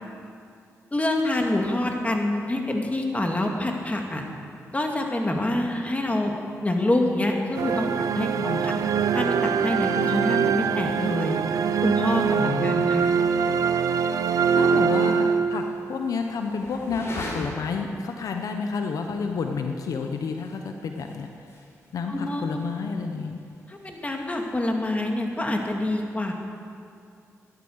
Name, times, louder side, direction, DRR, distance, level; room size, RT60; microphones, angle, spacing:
voice 1, 0.9-4.2 4.7-6.4 6.6-8.7 9.1-11.4 11.8-13.1 22.1-22.6 23.7-26.3, left 1 dB, 25° left, 2 dB, 2.2 m, -26 dB
sound 1, 7.5-15.9, right 6 dB, 80° right, 0.6 m, -23 dB
voice 2, 8.3-8.7 12.4-12.9 14.2-21.3 21.9-23.4, left 5 dB, 75° left, 4 dB, 0.9 m, -30 dB
sound 2, 11.7-24.5, left 1 dB, 50° left, 3.7 m, -45 dB
13.0 x 11.5 x 6.6 m, 2.4 s
cardioid pair, 60°, 6 cm